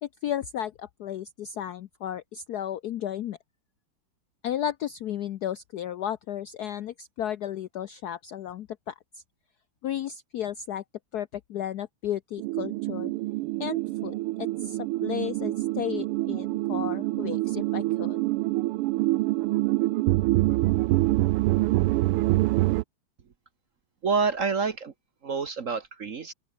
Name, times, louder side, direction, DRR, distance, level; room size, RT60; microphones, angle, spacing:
voice 1, 0.0-3.4 4.4-9.2 9.8-10.8 11.1-13.1 13.6-18.2, left 10 dB, 70° left, 0.9 m, -34 dB
sound 1, 12.4-22.8, right 18 dB, 90° right, 1.5 m, -26 dB
voice 2, 24.0-24.9 25.2-26.3, right 5 dB, 45° right, 1.2 m, -27 dB
open air
omnidirectional pair, 2.4 m